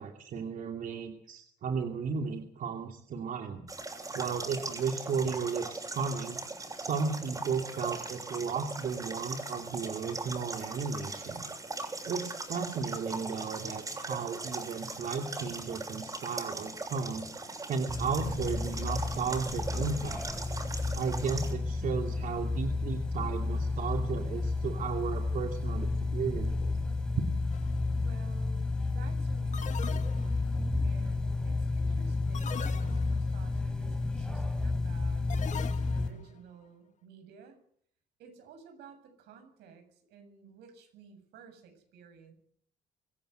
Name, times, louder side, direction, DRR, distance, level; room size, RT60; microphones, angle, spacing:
voice 1, 0.0-3.6 4.1-6.4 6.7-11.4 12.1-17.3 17.7-20.2 20.9-26.7, right 5 dB, 55° right, 4 dB, 2.6 m, -34 dB
sound 1, 3.7-21.5, right 2 dB, 20° right, 7.0 m, -40 dB
sound 2, 17.9-36.1, left 3 dB, 5° left, 3.2 m, -31 dB
sound 3, 27.5-27.9 29.5-30.6 32.3-33.4 35.3-36.2, left 8 dB, 45° left, 1.6 m, -42 dB
voice 2, 28.0-37.6 38.2-42.3, right 6 dB, 80° right, 7 dB, 7.6 m, -54 dB
25.0 x 15.5 x 8.1 m, 0.65 s
cardioid pair, 110°, 17 cm